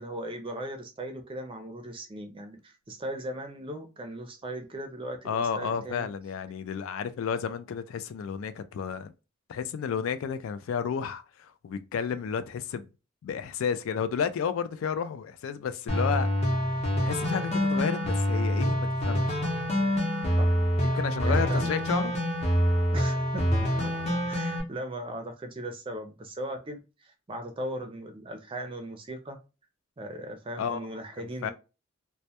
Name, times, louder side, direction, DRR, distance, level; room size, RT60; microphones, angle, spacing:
voice 1, 0.0-6.1 20.4-20.5 21.2-21.7 22.9-23.9 24.3-29.4 30.0-31.5, right 1 dB, 25° right, 0.4 m, -38 dB
voice 2, 5.2-9.1 9.5-12.9 13.2-16.3 17.0-19.4 20.8-22.2 30.6-30.8 31.2-31.5, left 7 dB, 80° left, 0.3 m, -32 dB
sound 1, 15.9-24.6, equal, 30° left, 0.6 m, -26 dB
2.1 x 2.1 x 2.7 m
head